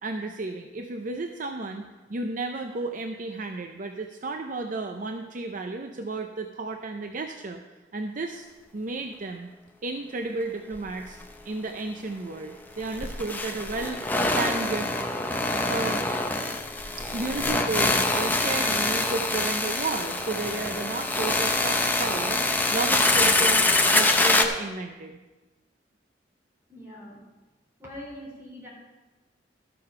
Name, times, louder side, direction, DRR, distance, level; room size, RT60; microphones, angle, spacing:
voice 1, 0.0-1.8 2.1-7.6 7.9-8.5 8.7-9.5 9.8-11.2 11.4-14.0 14.4-14.9 15.7-16.0 17.0-25.2, right 3 dB, 50° right, 4 dB, 0.6 m, -33 dB
sound 1, 10.7-10.9 11.1-11.2 12.8-24.4, left 2 dB, 10° left, 0.7 m, -25 dB
voice 2, 26.7-27.2 27.8-28.7, left 1 dB, 15° right, -4 dB, 4.0 m, -42 dB
12.5 x 6.7 x 5.6 m, 1.2 s
head